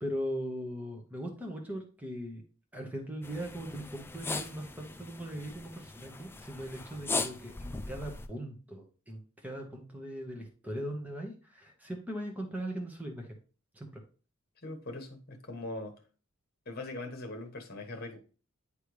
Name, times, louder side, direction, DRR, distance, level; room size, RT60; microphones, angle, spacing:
voice 1, 0.0-2.4 2.7-13.3 13.7-13.9, equal, 5° right, 1 dB, 1.2 m, -39 dB
sound 1, 3.2-8.3, left 3 dB, 10° left, 0.4 m, -39 dB
voice 2, 14.6-15.9 16.6-18.2, left 2 dB, 45° left, 4 dB, 1.3 m, -41 dB
9.8 x 3.3 x 3.2 m, 0.37 s
head